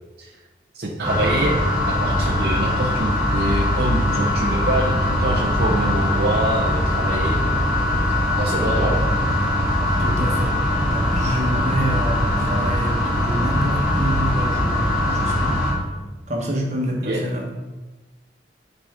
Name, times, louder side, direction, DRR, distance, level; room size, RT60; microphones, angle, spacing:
voice 1, 0.7-1.6 1.9-7.4 8.4-9.1 17.0-17.2, right 2 dB, 65° right, -5 dB, 0.8 m, -25 dB
sound 1, 1.0-15.7, left 1 dB, 5° right, 1.8 m, -21 dB
voice 2, 10.0-10.5 10.9-15.6 16.3-17.5, equal, 40° right, -1 dB, 1.3 m, -27 dB
8.7 x 4.0 x 3.6 m, 1.2 s
head